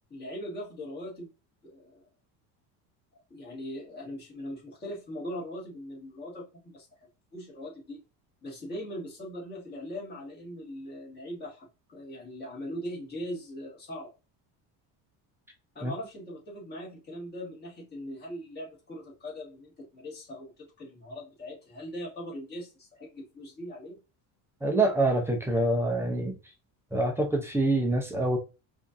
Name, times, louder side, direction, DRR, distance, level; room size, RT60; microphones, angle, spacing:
voice 1, 0.1-1.3 1.6-2.1 3.3-6.9 7.3-8.0 8.4-14.1 15.8-24.0, equal, 25° left, 1.9 m, -40 dB
voice 2, 24.6-26.3 26.9-28.4, right 2 dB, 5° right, 0.5 m, -26 dB
4.9 x 2.6 x 2.5 m
cardioid pair, 155°, 40 cm